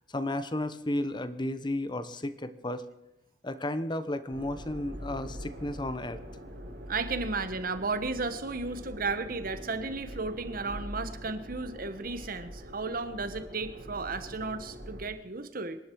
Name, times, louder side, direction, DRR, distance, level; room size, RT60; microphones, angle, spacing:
voice 1, 0.1-2.8 3.4-6.2, left 1 dB, 25° left, 12 dB, 1.0 m, -33 dB
sound 1, 4.3-15.1, equal, 70° right, 4.2 m, -43 dB
voice 2, 6.9-15.8, right 3 dB, 50° right, 11 dB, 1.3 m, -34 dB
26.0 x 11.0 x 4.7 m, 0.94 s
head